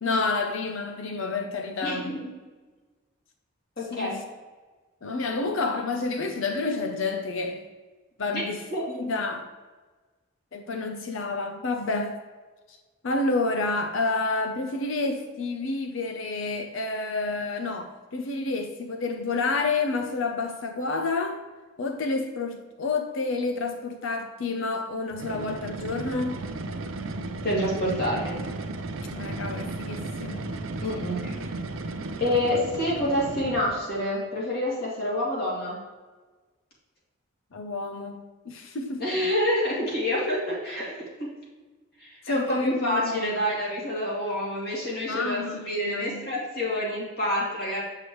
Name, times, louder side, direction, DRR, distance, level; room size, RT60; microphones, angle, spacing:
voice 1, 0.0-2.2 3.9-4.2 5.0-7.7 8.2-8.6 8.9-9.5 10.5-12.2 13.0-21.4 21.8-26.4 29.1-30.4 30.9-31.0 37.5-39.0 42.2-43.4 45.1-46.3, left 3 dB, 75° left, 0.6 m, -29 dB
voice 2, 1.8-2.2 3.8-4.2 8.3-8.4 8.7-8.8 27.4-28.4 30.8-31.3 32.2-35.8 39.0-40.9 41.2-41.3 42.0-47.8, left 1 dB, 50° left, 2.4 m, -27 dB
sound 1, 25.1-33.9, right 2 dB, 85° right, 0.6 m, -34 dB
7.8 x 6.6 x 3.1 m
head